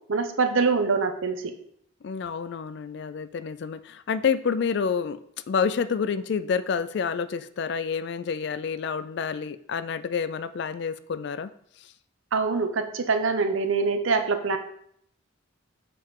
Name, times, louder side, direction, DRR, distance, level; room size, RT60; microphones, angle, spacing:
voice 1, 0.1-1.5 12.3-14.6, right 4 dB, 70° right, 7 dB, 0.7 m, -24 dB
voice 2, 2.0-5.2 5.5-11.5, left 6 dB, 55° left, 14 dB, 0.3 m, -28 dB
6.7 x 4.2 x 3.7 m, 0.68 s
head